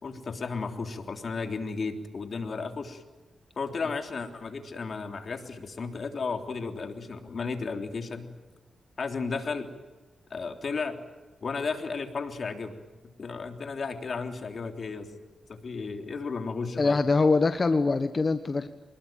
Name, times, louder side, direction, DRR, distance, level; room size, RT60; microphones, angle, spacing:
voice 1, 0.0-3.0 3.6-8.3 9.0-9.7 10.3-11.0 11.4-12.8 13.2-15.1 15.5-17.0, left 4 dB, 55° left, 6 dB, 3.4 m, -34 dB
voice 2, 16.8-18.7, left 3 dB, 40° left, 9 dB, 1.4 m, -23 dB
25.0 x 21.0 x 9.2 m, 1.2 s
cardioid pair, 85°, 0 cm